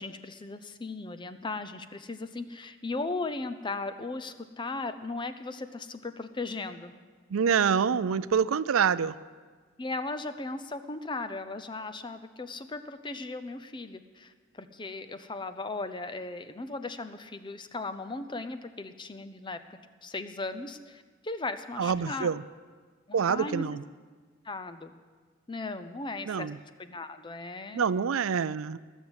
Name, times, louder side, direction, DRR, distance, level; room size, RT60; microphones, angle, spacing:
voice 1, 0.0-6.9 9.8-19.6 20.0-22.3 23.1-23.7 24.4-24.9 25.5-26.5 26.8-27.9, left 3 dB, 25° left, 10 dB, 0.6 m, -37 dB
voice 2, 7.3-9.1 21.8-22.4 23.1-23.8 26.3-26.6 27.7-28.8, right 6 dB, 90° right, 16 dB, 0.4 m, -26 dB
19.0 x 7.2 x 8.1 m, 1.5 s
head